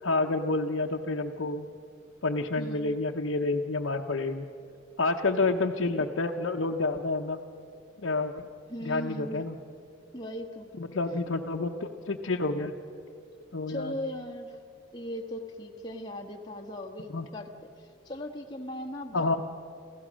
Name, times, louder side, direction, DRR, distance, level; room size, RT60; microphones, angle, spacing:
voice 1, 0.0-1.7 2.2-4.4 5.0-7.4 8.0-8.4 8.8-9.5 10.8-12.7 13.5-13.9 17.1-17.3 19.1-19.4, left 3 dB, 80° left, 0 dB, 0.8 m, -29 dB
voice 2, 2.5-3.0 8.7-9.5 10.1-10.7 13.7-14.6 14.9-17.5 17.8-19.4, left 1 dB, 20° left, 1 dB, 1.3 m, -38 dB
28.5 x 15.5 x 6.3 m, 2.5 s
head